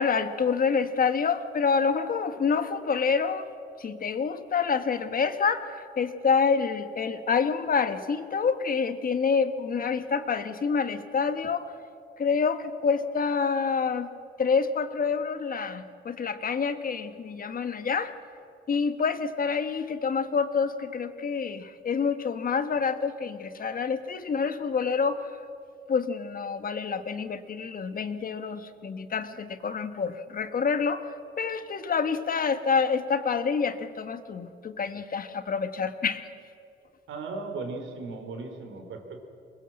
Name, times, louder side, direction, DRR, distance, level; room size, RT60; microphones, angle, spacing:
voice 1, 0.0-3.5 3.8-11.6 12.2-14.1 14.4-18.1 18.7-25.3 25.9-36.3, left 5 dB, 45° left, 10 dB, 1.4 m, -27 dB
voice 2, 37.1-39.3, right 3 dB, 80° right, 5 dB, 3.6 m, -37 dB
22.5 x 20.5 x 7.7 m, 2.5 s
cardioid pair, 90°, 20 cm